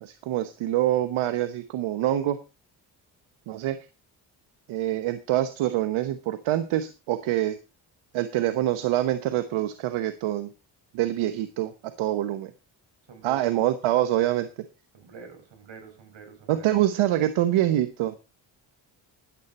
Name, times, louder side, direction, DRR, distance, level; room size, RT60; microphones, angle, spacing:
voice 1, 0.0-2.4 3.5-3.8 4.7-7.6 8.1-10.5 10.9-11.7 12.0-12.5 13.2-14.5 16.5-18.1, right 13 dB, 90° right, 11 dB, 1.1 m, -25 dB
voice 2, 13.1-13.5 14.9-16.8, right 5 dB, 70° right, 6 dB, 5.8 m, -47 dB
13.5 x 10.5 x 4.3 m, 0.30 s
supercardioid pair, 60°, 47 cm